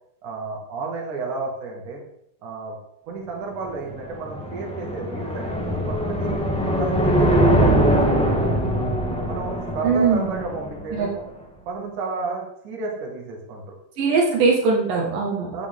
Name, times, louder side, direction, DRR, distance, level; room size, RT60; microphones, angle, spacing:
voice 1, 0.2-2.0 2.4-2.8 3.1-6.4 6.8-8.7 9.2-11.1 11.7-13.8 15.5-15.7, right 3 dB, 65° right, 0 dB, 3.5 m, -32 dB
sound 1, 3.7-11.1, equal, 5° left, 0.6 m, -22 dB
voice 2, 9.8-10.4 10.9-11.1 14.0-15.5, right 4 dB, 85° right, -1 dB, 3.5 m, -21 dB
12.5 x 8.5 x 3.7 m, 0.76 s
omnidirectional pair, 3.8 m